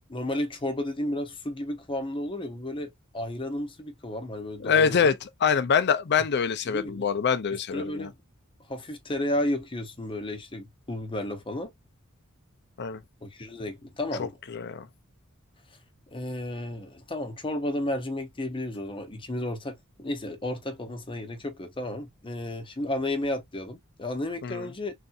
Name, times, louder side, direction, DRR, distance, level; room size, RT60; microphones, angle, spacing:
voice 1, 0.1-5.2 6.7-7.1 7.7-8.1 8.7-11.7 13.2-14.3 16.1-24.9, left 1 dB, 25° left, 0.8 m, -32 dB
voice 2, 4.6-8.1 12.8-13.0 14.2-14.9 24.4-24.7, left 6 dB, 50° left, 0.5 m, -25 dB
3.3 x 2.7 x 2.4 m
head